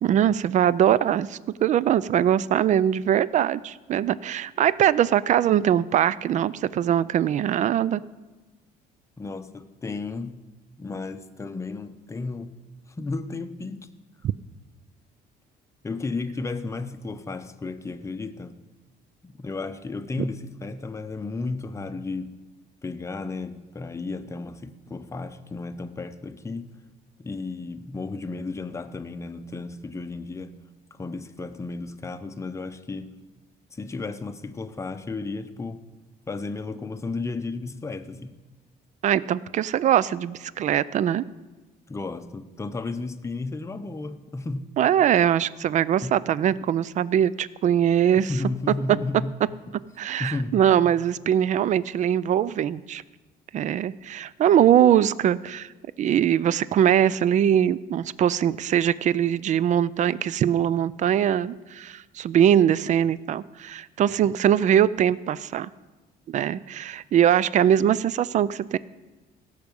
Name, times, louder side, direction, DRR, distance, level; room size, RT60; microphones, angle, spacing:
voice 1, 0.0-8.0 39.0-41.2 44.8-48.3 50.0-53.0 53.5-55.7 56.0-65.7 66.3-68.8, right 10 dB, 45° right, 0.4 m, -22 dB
voice 2, 9.2-10.4 10.8-12.5 13.0-13.9 15.8-18.5 19.2-22.3 22.8-26.7 27.2-30.5 30.9-33.1 33.7-35.8 36.3-38.3 41.9-44.7 46.0-46.2 48.2-49.3 50.2-50.7, left 3 dB, 15° left, 0.7 m, -33 dB
16.5 x 6.6 x 5.3 m
cardioid pair, 110°, 17 cm